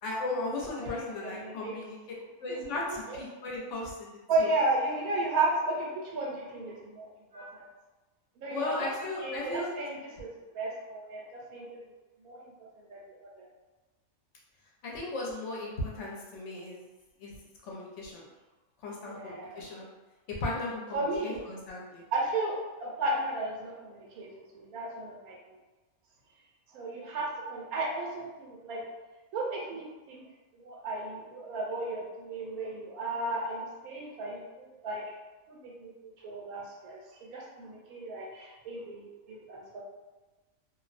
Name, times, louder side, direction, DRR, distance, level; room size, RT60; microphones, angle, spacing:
voice 1, 0.0-2.0 2.4-4.1 4.4-4.5 8.5-9.7 14.8-16.8 17.2-17.3 17.6-18.3 18.8-19.8 20.4-22.0, left 2 dB, 65° left, -3 dB, 0.8 m, -36 dB
voice 2, 0.7-1.8 2.5-2.6 2.9-3.2 4.3-7.1 7.3-7.6 8.4-8.9 9.2-11.8 12.2-13.0 13.3-13.5 19.1-19.6 20.9-21.5 22.1-25.4 26.7-28.9 29.3-30.2 30.5-35.0 35.5-39.8, right 2 dB, 85° right, -2 dB, 1.1 m, -34 dB
2.5 x 2.0 x 2.4 m, 1.1 s
omnidirectional pair, 1.5 m